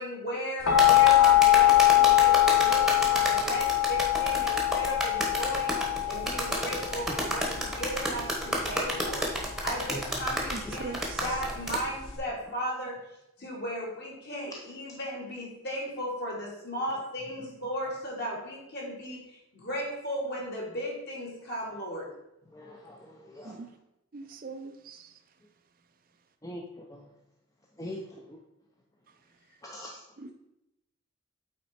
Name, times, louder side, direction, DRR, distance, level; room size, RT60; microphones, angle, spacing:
voice 1, 0.0-9.3 9.6-13.0 13.4-22.1, equal, 50° left, -3 dB, 2.2 m, -36 dB
sound 1, 0.7-12.2, left 14 dB, 85° left, 1.1 m, -24 dB
sound 2, 0.8-11.8, right 1 dB, ahead, 1.0 m, -30 dB
voice 2, 10.5-11.2 23.4-23.7 24.1-25.1 30.2-30.3, right 4 dB, 45° right, 8 dB, 0.5 m, -41 dB
voice 3, 22.5-23.6 26.4-27.1 27.8-28.4 29.6-30.0, left 1 dB, 15° left, 0 dB, 0.5 m, -42 dB
8.6 x 4.1 x 4.2 m, 0.88 s
head